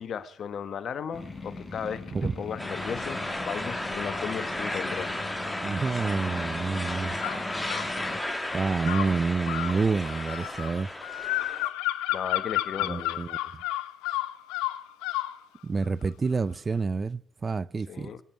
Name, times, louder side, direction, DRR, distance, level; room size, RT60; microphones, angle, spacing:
voice 1, 0.0-5.1 7.9-8.2 12.1-13.2 17.9-18.2, left 7 dB, 60° left, 1.2 m, -36 dB
sound 1, 1.1-8.2, left 3 dB, 30° left, 4.0 m, -41 dB
sound 2, 2.6-11.7, left 1 dB, 10° left, 2.3 m, -34 dB
voice 2, 5.6-7.2 8.5-10.9 12.8-13.4 15.6-18.1, right 4 dB, 35° right, 0.5 m, -28 dB
sound 3, 7.2-7.9 8.8-15.4, left 16 dB, 90° left, 0.8 m, -31 dB
22.0 x 9.4 x 4.5 m
supercardioid pair, 70°, 0 cm